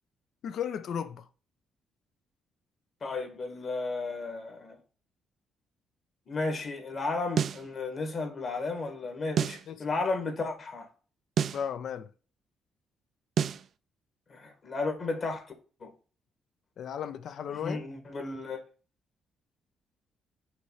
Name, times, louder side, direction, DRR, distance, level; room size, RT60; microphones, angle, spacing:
voice 1, 0.4-1.3 9.7-9.8 11.5-12.1 16.8-17.8, left 8 dB, 65° left, 0.6 m, -35 dB
voice 2, 3.0-4.8 6.3-10.8 14.3-15.4 15.8-15.9 17.5-18.6, left 3 dB, 45° left, 1.6 m, -33 dB
sound 1, 7.4-7.7 9.4-9.7 11.4-11.7 13.4-13.7, right 8 dB, 60° right, 0.4 m, -28 dB
5.7 x 3.3 x 5.6 m
cardioid pair, 90°, 0 cm